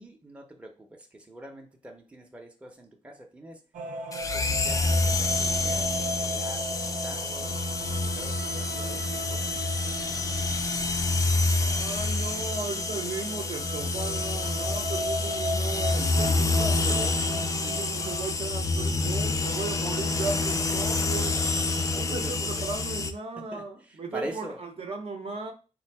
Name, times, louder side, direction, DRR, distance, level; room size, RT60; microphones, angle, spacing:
voice 1, 0.0-3.6 4.3-9.5 21.9-22.7 23.4-24.6, right 1 dB, 10° right, 0.7 m, -44 dB
sound 1, 3.7-18.3, right 1 dB, 85° right, 0.5 m, -37 dB
sound 2, 4.1-23.1, left 3 dB, 25° left, 0.4 m, -28 dB
voice 2, 11.6-17.2 17.6-21.4 21.9-25.5, right 3 dB, 50° right, 0.7 m, -36 dB
3.8 x 2.6 x 4.6 m
wide cardioid pair, 125°, 13 cm